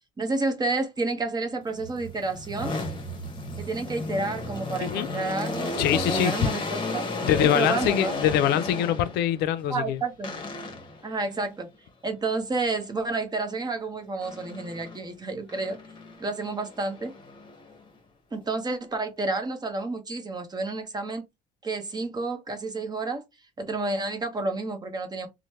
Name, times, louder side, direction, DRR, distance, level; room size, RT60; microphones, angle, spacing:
voice 1, 0.2-2.8 3.6-7.0 7.4-8.1 9.7-10.3 11.0-11.7 12.0-15.8 16.2-17.1 18.3-21.2 21.6-23.2 23.6-25.3, right 3 dB, 25° right, 0.9 m, -30 dB
sound 1, 1.7-9.3 10.2-11.0 14.2-15.0 15.5-17.9, left 2 dB, 30° left, 1.0 m, -33 dB
voice 2, 5.8-6.5 7.2-10.0, left 11 dB, 80° left, 0.4 m, -24 dB
3.1 x 2.1 x 2.8 m
cardioid pair, 110°, 17 cm